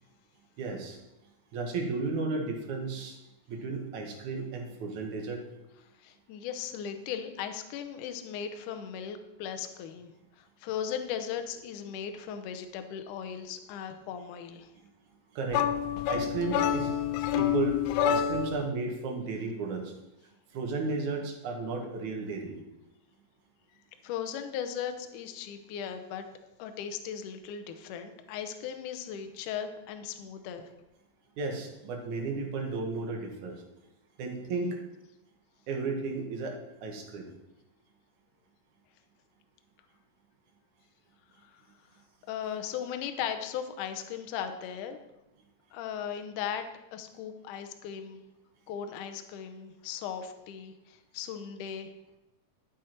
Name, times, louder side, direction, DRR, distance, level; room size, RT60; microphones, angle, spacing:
voice 1, 0.6-1.0 1.5-3.2 3.5-5.4 15.3-15.7 16.1-16.9 17.3-17.8 18.1-19.9 20.5-22.6 31.4-33.6 34.2-34.8 35.7-36.6 36.8-37.2, right 3 dB, 60° right, 1 dB, 2.6 m, -33 dB
voice 2, 6.0-10.1 10.4-14.7 24.0-26.3 26.6-30.7 41.4-41.5 42.3-45.0 45.7-46.6 46.9-48.2 48.7-51.9, left 8 dB, 70° left, 8 dB, 2.1 m, -37 dB
sound 1, 15.5-18.7, left 9 dB, 90° left, 2.5 m, -27 dB
12.0 x 7.9 x 4.5 m, 0.94 s
omnidirectional pair, 4.3 m